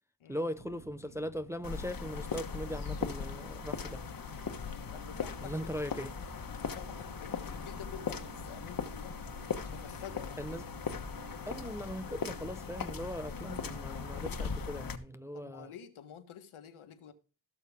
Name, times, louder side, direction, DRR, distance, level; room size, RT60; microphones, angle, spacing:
voice 1, 0.3-4.1 5.4-6.1 10.4-10.6 11.5-15.7, equal, 5° right, 0.5 m, -39 dB
sound 1, 0.5-12.5, right 5 dB, 65° right, 4.5 m, -54 dB
sound 2, 1.6-15.0, left 5 dB, 45° left, 1.4 m, -39 dB
voice 2, 4.9-5.7 6.5-9.2 9.7-10.6 15.3-17.1, left 8 dB, 75° left, 1.6 m, -49 dB
17.0 x 6.6 x 3.6 m
cardioid pair, 100°, 49 cm